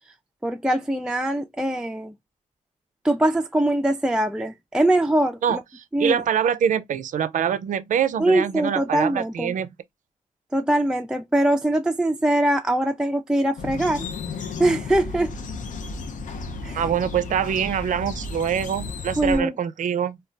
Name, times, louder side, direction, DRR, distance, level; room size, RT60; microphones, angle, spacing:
voice 1, 0.4-2.1 3.0-5.6 5.9-6.2 8.2-9.5 10.5-14.1 14.6-15.3 16.6-16.9 19.2-19.6, right 1 dB, 5° right, 0.4 m, -22 dB
voice 2, 5.4-9.7 16.7-20.2, right 8 dB, 70° right, 0.4 m, -24 dB
sound 1, 13.6-19.4, left 3 dB, 75° left, 0.6 m, -33 dB
2.3 x 2.0 x 3.7 m
cardioid pair, 50°, 13 cm